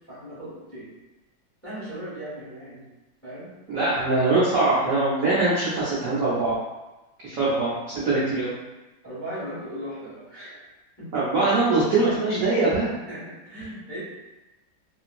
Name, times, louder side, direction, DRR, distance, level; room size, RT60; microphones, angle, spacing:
voice 1, 0.1-0.9 1.6-2.8 3.2-3.5 7.3-7.5 9.0-10.6 11.0-11.1 13.1-14.0, equal, 10° left, -11 dB, 1.1 m, -37 dB
voice 2, 3.7-6.6 7.2-8.5 11.1-12.9, right 2 dB, 65° right, -8 dB, 0.8 m, -22 dB
3.0 x 2.7 x 2.4 m, 1.1 s
omnidirectional pair, 2.1 m